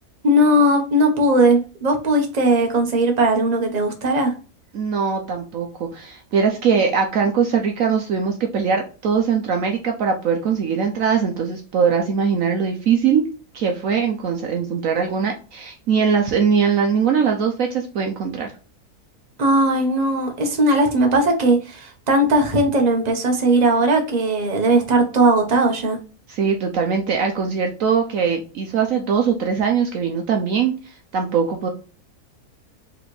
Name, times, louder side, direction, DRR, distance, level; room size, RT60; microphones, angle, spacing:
voice 1, 0.2-4.3 19.4-26.0, right 1 dB, 30° right, 3 dB, 1.0 m, -18 dB
voice 2, 4.7-13.3 13.5-18.5 26.3-30.7 31.1-31.7, right 6 dB, 65° right, 3 dB, 1.0 m, -21 dB
5.0 x 3.3 x 3.1 m, 0.36 s
omnidirectional pair, 1.6 m